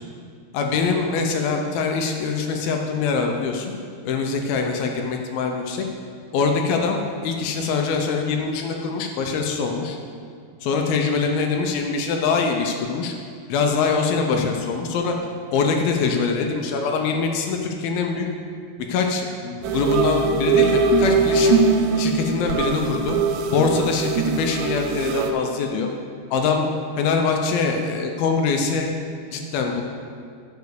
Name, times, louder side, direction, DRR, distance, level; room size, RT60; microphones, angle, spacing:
voice 1, 0.5-3.7 4.1-5.8 6.3-10.0 10.6-13.1 13.5-15.1 15.5-18.3 18.9-21.6 22.0-23.2 23.5-25.9 26.3-26.7 27.0-28.9 29.3-29.8, left 4 dB, 80° left, 3 dB, 2.4 m, -23 dB
sound 1, 19.6-25.3, right 4 dB, 80° right, 2.4 m, -21 dB
9.4 x 5.4 x 6.7 m, 2.2 s
omnidirectional pair, 4.5 m